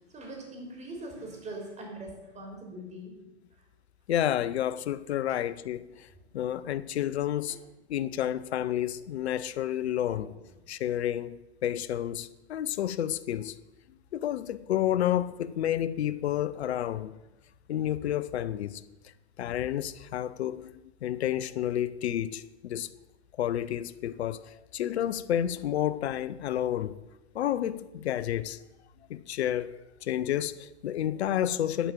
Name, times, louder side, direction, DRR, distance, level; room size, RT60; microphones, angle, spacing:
voice 1, 0.1-3.1 7.5-7.6 10.1-10.2, right 1 dB, 20° right, 3.4 m, -42 dB
voice 2, 4.1-6.1 6.3-7.6 7.9-10.3 10.7-13.6 14.1-17.2 17.7-18.8 19.4-20.7 21.0-22.9 23.4-27.0 27.3-28.6 29.1-29.7 30.0-31.9, left 11 dB, 70° left, 0.7 m, -30 dB
11.5 x 5.0 x 7.3 m
hypercardioid pair, 120°, 34 cm